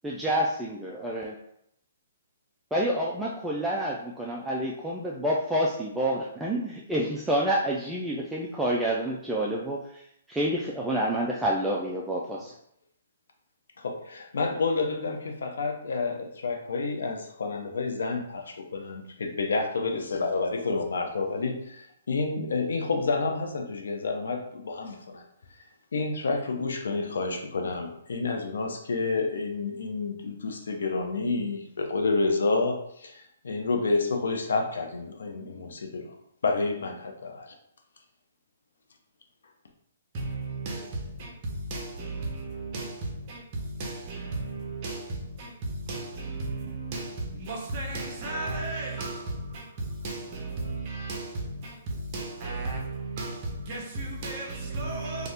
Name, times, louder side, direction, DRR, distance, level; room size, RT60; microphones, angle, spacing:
voice 1, 0.0-1.3 2.7-9.8 10.3-12.5, right 1 dB, 5° right, 0.3 m, -28 dB
voice 2, 13.8-25.2 25.9-36.1 36.4-37.5, left 3 dB, 80° left, 0.6 m, -29 dB
voice 3, 40.1-55.3, right 2 dB, 35° right, 0.9 m, -34 dB
2.7 x 2.4 x 3.4 m
hypercardioid pair, 155°, 0 cm